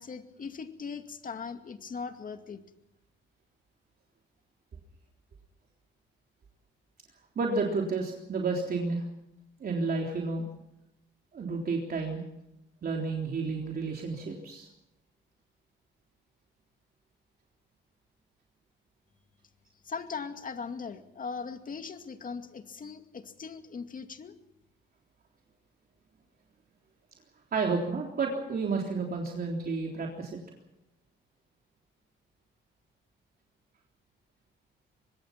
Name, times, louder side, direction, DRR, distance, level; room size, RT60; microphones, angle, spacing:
voice 1, 0.0-2.6 19.8-24.3, left 5 dB, 45° left, 7 dB, 2.3 m, -39 dB
voice 2, 7.4-9.0 9.6-10.5 11.3-12.2 12.8-14.7 27.5-30.4, right 4 dB, 50° right, 0 dB, 3.6 m, -31 dB
24.0 x 21.0 x 6.0 m, 0.85 s
cardioid pair, 90°, 20 cm